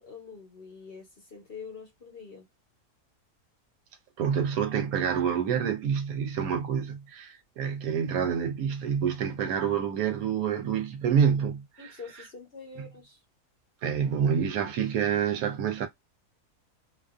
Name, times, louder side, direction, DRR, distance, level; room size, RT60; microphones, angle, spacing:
voice 1, 0.0-2.5 11.8-13.2, left 5 dB, 45° left, 0.9 m, -45 dB
voice 2, 4.2-11.6 13.8-15.9, right 7 dB, 75° right, 1.0 m, -27 dB
2.5 x 2.4 x 2.4 m
omnidirectional pair, 1.6 m